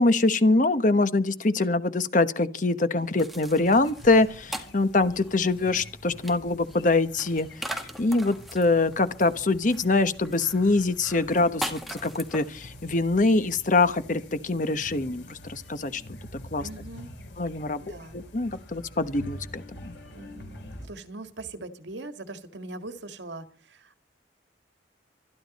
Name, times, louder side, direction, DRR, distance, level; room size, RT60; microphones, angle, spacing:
voice 1, 0.0-16.2 16.5-16.7 17.4-17.8 18.1-19.9, left 3 dB, 45° left, 1.1 m, -24 dB
sound 1, 3.0-13.0, right 1 dB, ahead, 1.7 m, -41 dB
sound 2, 3.6-20.9, left 1 dB, 85° left, 3.8 m, -46 dB
voice 2, 16.6-17.1 17.8-18.2 20.1-24.0, right 2 dB, 90° right, 1.9 m, -41 dB
25.0 x 11.0 x 4.2 m
head